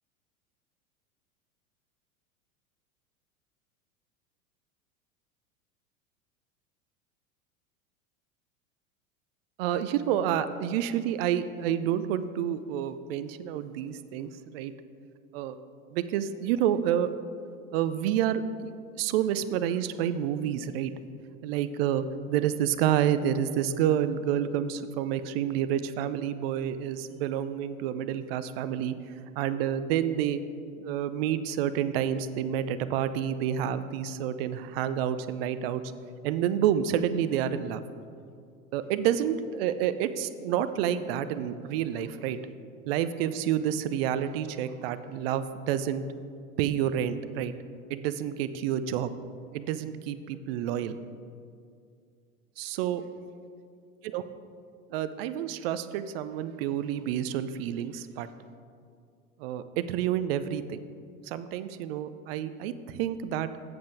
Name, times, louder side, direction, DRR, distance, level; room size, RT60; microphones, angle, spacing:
voice 1, 9.6-14.7 15.3-15.6 15.9-17.1 17.7-20.9 21.4-29.0 29.4-30.4 30.8-35.8 36.2-37.8 38.7-42.4 42.9-46.0 46.6-47.5 47.9-49.1 49.5-51.0 52.6-53.0 54.0-54.2 54.9-58.3 59.4-60.8 61.2-63.5, right 10 dB, 45° right, 12 dB, 0.5 m, -29 dB
7.8 x 7.3 x 4.5 m, 2.3 s
figure-of-eight pair, 90°, 43 cm